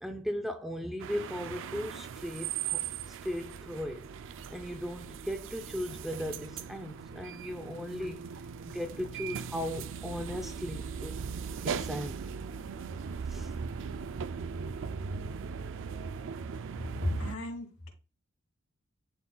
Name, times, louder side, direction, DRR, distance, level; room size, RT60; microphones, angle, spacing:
voice 1, 0.0-4.1 4.5-8.3 8.7-11.2 11.6-12.3 13.3-13.5, equal, ahead, 0.6 m, -37 dB
sound 1, 1.0-17.4, right 6 dB, 60° right, 0.4 m, -39 dB
voice 2, 17.0-17.9, left 1 dB, 70° left, 2.7 m, -34 dB
11.0 x 4.1 x 2.3 m
head